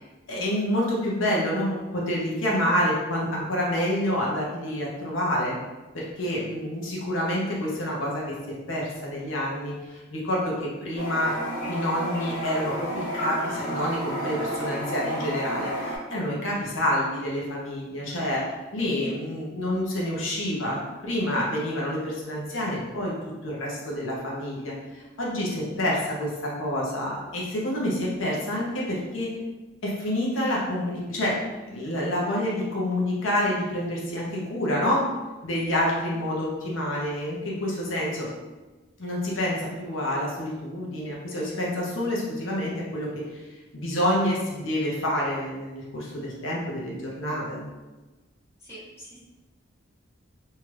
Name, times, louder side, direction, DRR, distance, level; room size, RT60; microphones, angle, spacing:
voice 1, 0.0-5.6 5.9-8.3 8.7-11.3 11.7-18.5 18.7-23.1 23.4-29.3 29.8-31.4 31.7-35.0 35.4-38.3 39.0-43.4 43.7-47.7, left 1 dB, 80° left, -4 dB, 0.8 m, -28 dB
Toilet flush, 11.0-16.0, equal, 45° left, 0.7 m, -31 dB
voice 2, 48.7-49.2, right 1 dB, 15° left, -10 dB, 0.8 m, -44 dB
2.8 x 2.4 x 3.2 m, 1.2 s
head